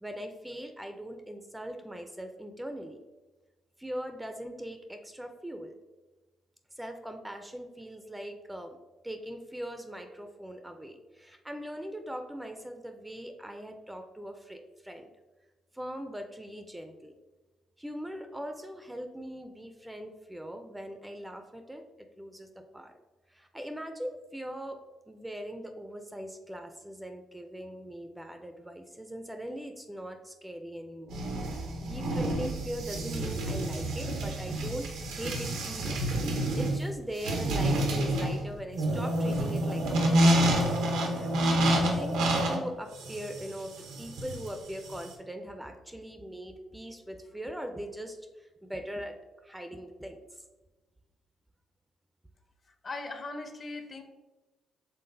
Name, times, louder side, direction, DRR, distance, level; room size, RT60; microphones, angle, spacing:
voice 1, 0.0-3.0 3.8-5.8 6.8-8.8 9.0-15.1 15.7-17.1 17.8-22.9 23.3-31.2 31.5-40.7 41.1-42.2 42.5-49.2 49.4-50.4, equal, 10° right, 6 dB, 0.4 m, -41 dB
sound 1, 31.1-45.1, right 1 dB, 90° right, 0.7 m, -28 dB
voice 2, 52.8-54.0, left 3 dB, 40° left, 6 dB, 0.6 m, -39 dB
5.7 x 3.5 x 2.6 m, 1.2 s
cardioid pair, 90°, 0 cm